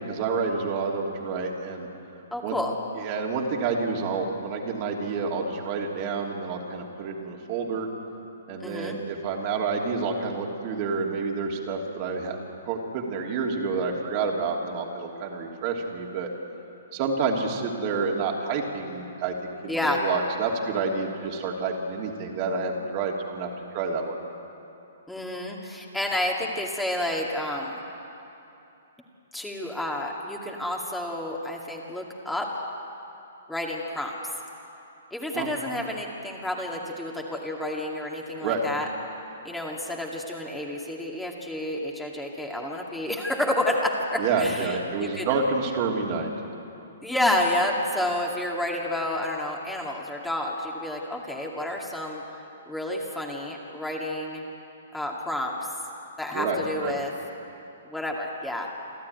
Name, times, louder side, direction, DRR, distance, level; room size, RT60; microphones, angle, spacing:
voice 1, 0.0-1.9 2.4-2.6 2.9-7.9 8.5-12.4 12.6-16.3 16.9-23.5 23.7-24.2 35.3-35.5 38.4-38.6 44.2-46.3 56.3-56.9, right 4 dB, 40° right, 0 dB, 2.9 m, -28 dB
voice 2, 2.3-2.7 8.6-9.0 19.7-20.0 25.1-27.8 29.3-32.5 33.5-34.1 35.1-38.9 39.4-45.3 47.0-52.2 52.7-54.5 54.9-55.6 56.2-57.1 57.9-58.7, left 1 dB, 5° left, -1 dB, 2.3 m, -30 dB
27.5 x 12.5 x 9.4 m, 2.9 s
figure-of-eight pair, 120°, 0 cm